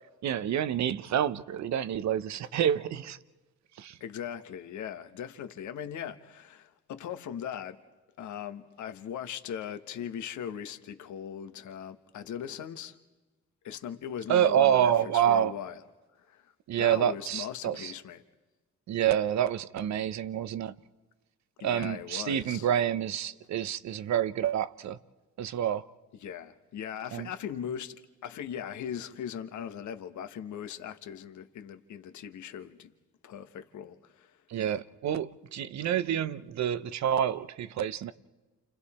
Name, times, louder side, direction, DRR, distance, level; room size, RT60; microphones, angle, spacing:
voice 1, 0.2-3.2 3.8-4.0 14.3-15.5 16.7-17.9 18.9-20.7 21.6-25.0 25.4-25.8 27.1-27.3 34.5-38.1, right 10 dB, 65° right, 0.9 m, -28 dB
voice 2, 4.0-7.8 8.2-13.0 13.6-15.8 16.2-16.5 16.8-18.2 21.6-22.7 26.1-32.9 33.2-34.4, left 9 dB, 70° left, 1.3 m, -39 dB
29.5 x 29.0 x 4.3 m
cardioid pair, 90°, 30 cm